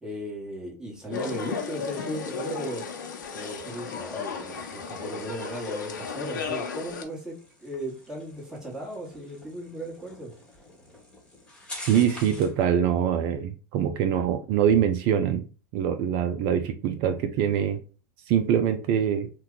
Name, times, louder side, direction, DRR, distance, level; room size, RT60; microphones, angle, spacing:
voice 1, 0.0-2.8 3.3-10.3, right 1 dB, 5° right, -4 dB, 1.3 m, -36 dB
sound 1, 1.1-7.0, left 5 dB, 85° left, 0.7 m, -34 dB
sound 2, 2.4-12.6, left 1 dB, 10° left, 1.3 m, -48 dB
voice 2, 11.8-15.4 15.7-17.8 18.3-19.3, right 9 dB, 50° right, 8 dB, 0.4 m, -24 dB
2.7 x 2.2 x 3.7 m, 0.35 s
hypercardioid pair, 110°, 10 cm